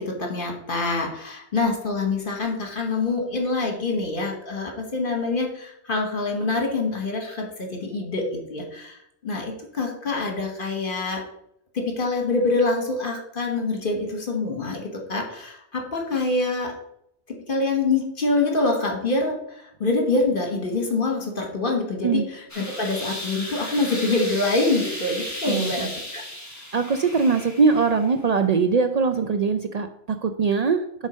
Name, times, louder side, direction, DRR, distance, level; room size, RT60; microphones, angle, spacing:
voice 1, 0.0-9.0 9.2-11.2 11.7-16.7 17.5-26.2, left 3 dB, 50° left, 1 dB, 1.4 m, -25 dB
sound 1, 22.5-28.1, left 1 dB, 15° left, 1.3 m, -35 dB
voice 2, 25.4-25.9 26.7-29.9 30.2-30.8, right 5 dB, 85° right, 7 dB, 0.3 m, -21 dB
7.2 x 3.9 x 5.0 m, 0.74 s
omnidirectional pair, 1.2 m